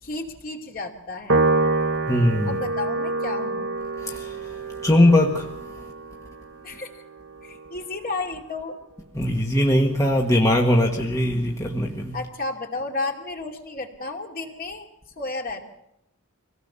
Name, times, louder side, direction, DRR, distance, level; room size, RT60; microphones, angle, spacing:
voice 1, 0.0-1.4 2.5-3.7 6.6-7.0 7.4-8.8 12.1-14.9 15.2-15.6, left 3 dB, 40° left, 2.7 m, -32 dB
Piano, 1.3-7.9, right 3 dB, 60° right, 1.2 m, -27 dB
voice 2, 2.1-2.6 4.0-4.5 4.8-5.5 9.1-12.2, left 1 dB, 15° left, 1.5 m, -20 dB
25.0 x 17.5 x 6.9 m
head